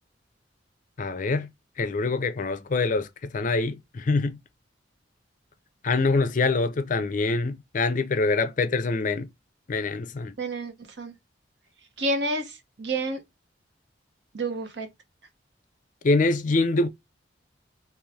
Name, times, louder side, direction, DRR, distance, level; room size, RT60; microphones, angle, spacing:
voice 1, 1.0-1.5 1.8-4.4 5.8-9.3 9.7-10.3 16.0-16.9, left 3 dB, 45° left, 0.4 m, -25 dB
voice 2, 10.4-11.1 12.0-13.2 14.3-14.9, right 2 dB, 70° right, 1.0 m, -29 dB
3.1 x 2.9 x 3.4 m
head